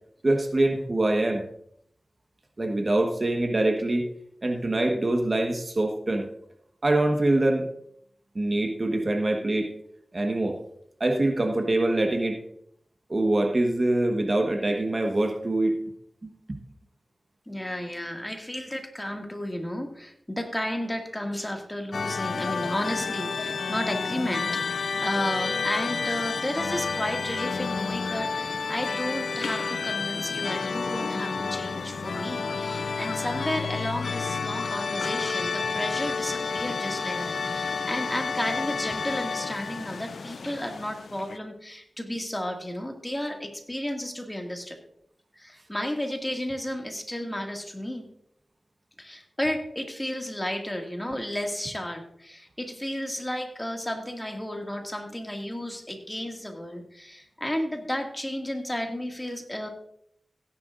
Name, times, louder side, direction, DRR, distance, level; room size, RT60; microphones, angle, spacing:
voice 1, 0.2-1.4 2.6-4.1 4.4-6.3 6.8-7.7 8.3-9.7 10.1-10.6 11.0-12.4 13.1-15.7 16.2-16.6, right 2 dB, 45° right, 4 dB, 1.3 m, -24 dB
voice 2, 17.5-44.8 45.4-48.1 49.0-59.7, left 1 dB, 15° left, 2 dB, 2.1 m, -33 dB
sound 1, 21.9-41.4, left 5 dB, 80° left, 0.4 m, -30 dB
16.0 x 10.5 x 2.5 m, 0.70 s
cardioid pair, 55°, 0 cm